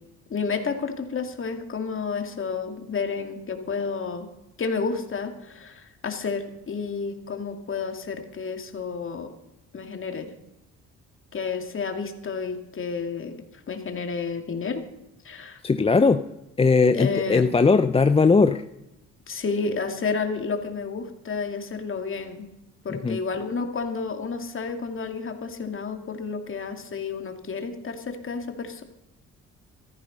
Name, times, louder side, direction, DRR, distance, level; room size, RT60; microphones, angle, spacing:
voice 1, 0.3-4.3 4.6-9.3 9.7-10.3 11.3-13.3 13.7-14.8 15.2-15.6 16.9-17.4 19.3-22.5 22.8-28.8, left 5 dB, 45° left, 5 dB, 2.5 m, -30 dB
voice 2, 15.6-16.3 16.6-18.6 22.9-23.2, left 4 dB, 20° left, 10 dB, 0.6 m, -19 dB
15.5 x 13.5 x 5.3 m, 0.89 s
cardioid pair, 90°, 30 cm